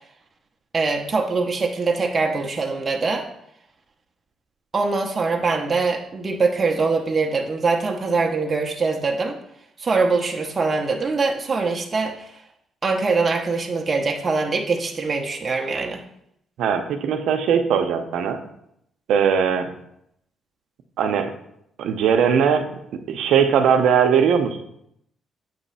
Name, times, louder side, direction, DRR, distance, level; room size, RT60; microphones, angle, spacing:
voice 1, 0.7-3.3 4.7-9.4 9.8-12.4 12.8-16.0, right 4 dB, 30° right, 2 dB, 0.8 m, -23 dB
voice 2, 16.6-18.4 19.1-19.7 21.0-21.3 21.8-22.7 23.1-24.6, right 7 dB, 80° right, 7 dB, 0.7 m, -19 dB
7.7 x 3.0 x 5.6 m, 0.75 s
cardioid pair, 90°, 0 cm